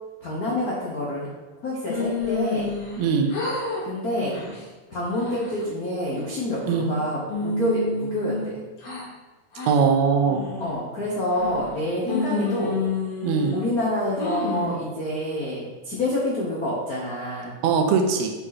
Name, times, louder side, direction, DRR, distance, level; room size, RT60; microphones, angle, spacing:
voice 1, 0.2-1.3 1.6-2.7 3.8-4.4 4.9-8.5 10.6-12.7 13.5-17.5, left 1 dB, 90° left, -5 dB, 0.8 m, -27 dB
sound 1, 1.9-3.0 3.3-3.8 4.2-4.6 5.1-5.6 6.2-6.9 7.3-9.0 9.5-9.7 10.3-10.7 11.3-11.8 12.1-13.7 14.2-14.8, left 3 dB, 60° left, 3.1 m, -29 dB
voice 2, 3.0-3.3 6.7-6.9 9.7-10.4 13.2-13.5 17.6-18.3, right 5 dB, 70° right, 4 dB, 2.0 m, -20 dB
7.6 x 5.1 x 4.2 m, 1.2 s
omnidirectional pair, 3.6 m